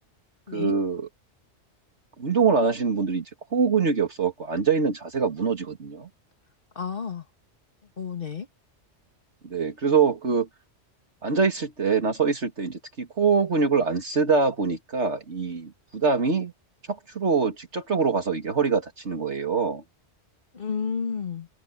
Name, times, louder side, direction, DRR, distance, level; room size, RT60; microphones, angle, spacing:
voice 1, 0.5-1.1 2.2-3.3 3.5-6.1 9.4-10.5 11.2-16.5 16.9-19.8, right 5 dB, 75° right, 2.6 m, -24 dB
voice 2, 6.8-7.3 8.0-8.5 20.5-21.5, left 6 dB, 50° left, 1.9 m, -31 dB
open air
omnidirectional pair, 1.2 m